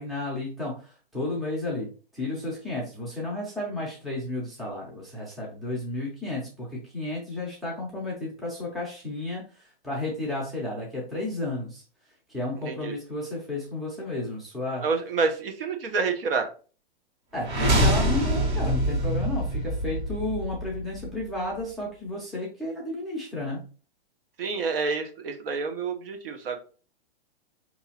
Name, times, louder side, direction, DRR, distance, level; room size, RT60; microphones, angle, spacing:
voice 1, 0.0-11.8 12.3-14.8 17.3-23.7, left 2 dB, ahead, -5 dB, 0.5 m, -32 dB
voice 2, 14.8-16.5 24.4-26.6, right 4 dB, 65° right, 6 dB, 1.1 m, -28 dB
sound 1, 17.4-21.4, right 1 dB, 45° right, 1.6 m, -25 dB
4.9 x 2.8 x 2.8 m, 0.37 s
hypercardioid pair, 160°, 30 cm